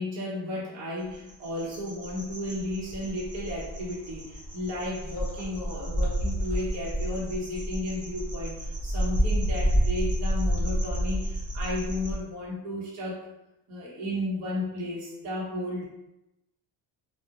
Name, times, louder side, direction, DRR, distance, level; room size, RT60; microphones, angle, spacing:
voice 1, 0.0-13.2 13.7-15.9, left 1 dB, 35° right, -6 dB, 0.9 m, -33 dB
sound 1, 1.1-12.2, equal, 20° right, 0.4 m, -30 dB
2.4 x 2.1 x 2.7 m, 0.93 s
cardioid pair, 130°, 46 cm